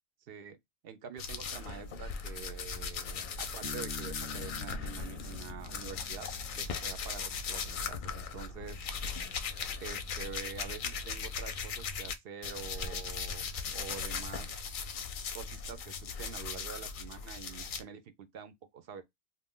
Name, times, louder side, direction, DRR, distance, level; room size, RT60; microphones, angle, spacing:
voice 1, 0.3-0.6 0.8-6.3 6.5-8.8 9.8-13.5 13.7-14.8 15.3-19.0, right 7 dB, 65° right, 0.7 m, -46 dB
sound 1, 1.2-12.1 12.4-17.8, left 5 dB, 60° left, 0.6 m, -38 dB
Bass guitar, 3.6-7.3, left 2 dB, 30° right, 0.4 m, -47 dB
2.5 x 2.2 x 3.5 m
omnidirectional pair, 1.1 m